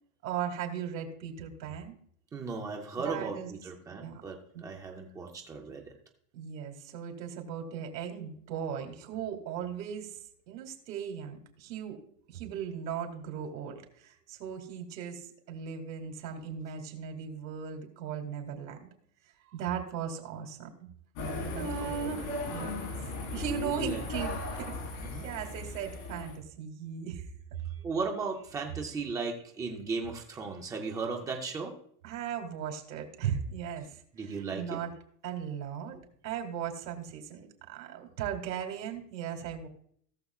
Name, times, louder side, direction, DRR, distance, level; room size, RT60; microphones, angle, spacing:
voice 1, 0.2-1.9 3.0-3.5 3.9-4.2 4.5-4.6 6.3-10.2 10.5-12.0 12.3-18.9 19.5-20.7 21.5-22.9 23.3-24.7 25.2-27.3 32.0-34.9 35.2-36.0 36.2-39.7, right 8 dB, 90° right, 4 dB, 2.6 m, -37 dB
voice 2, 2.3-5.9 21.8-22.2 23.4-24.0 25.0-25.2 27.8-31.7 34.1-34.8 35.9-36.0, right 4 dB, 10° right, 2 dB, 0.4 m, -36 dB
sound 1, 21.1-26.4, left 2 dB, 50° left, 3.8 m, -37 dB
17.5 x 6.9 x 2.3 m, 0.63 s
supercardioid pair, 160°, 49 cm